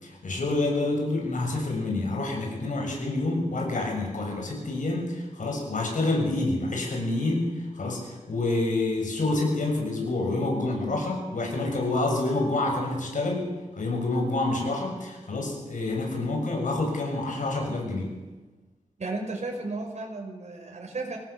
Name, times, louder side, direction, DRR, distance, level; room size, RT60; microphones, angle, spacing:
voice 1, 0.0-18.1, left 2 dB, 70° left, 1 dB, 7.0 m, -28 dB
voice 2, 19.0-21.2, right 3 dB, 60° right, 1 dB, 5.4 m, -34 dB
24.0 x 18.0 x 7.1 m, 1.2 s
wide cardioid pair, 95°, 13 cm